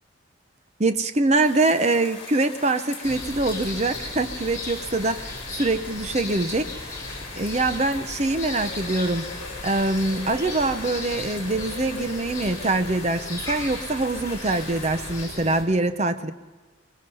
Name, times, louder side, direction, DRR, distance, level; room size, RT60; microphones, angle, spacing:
voice 1, 0.8-6.7 7.4-9.3 9.6-16.3, right 2 dB, 35° right, 10 dB, 0.7 m, -24 dB
sound 1, 1.3-15.2, left 3 dB, 30° left, 4.8 m, -40 dB
sound 2, 3.0-15.6, left 2 dB, 15° left, 3.8 m, -36 dB
22.5 x 21.5 x 5.6 m, 1.3 s
head